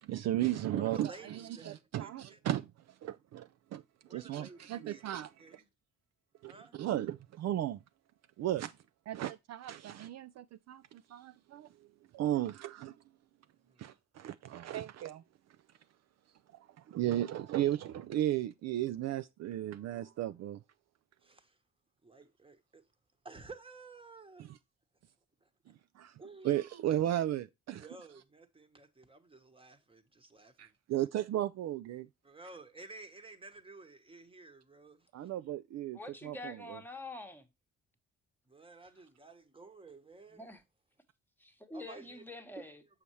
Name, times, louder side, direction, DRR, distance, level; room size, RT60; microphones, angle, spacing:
voice 1, 0.0-2.7 3.0-3.8 4.1-5.6 6.4-7.8 8.4-8.7 9.1-11.7 12.1-12.9 13.8-15.2 16.5-20.6 26.0-26.1 26.4-27.9 30.6-32.1 35.1-36.8, right 13 dB, 60° right, 0.4 m, -35 dB
voice 2, 0.7-2.4 4.1-5.0 5.4-5.7 6.4-6.8 13.7-14.0 21.2-21.6 22.0-22.8 23.2-24.5 25.4-25.5 26.2-26.6 27.8-31.1 32.2-35.3 38.5-40.6 41.7-42.2 42.5-43.0, right 3 dB, 20° right, 1.2 m, -53 dB
voice 3, 35.9-37.4 40.3-40.6 41.4-42.8, left 2 dB, 5° left, 1.1 m, -46 dB
6.9 x 5.6 x 3.1 m
cardioid pair, 90°, 30 cm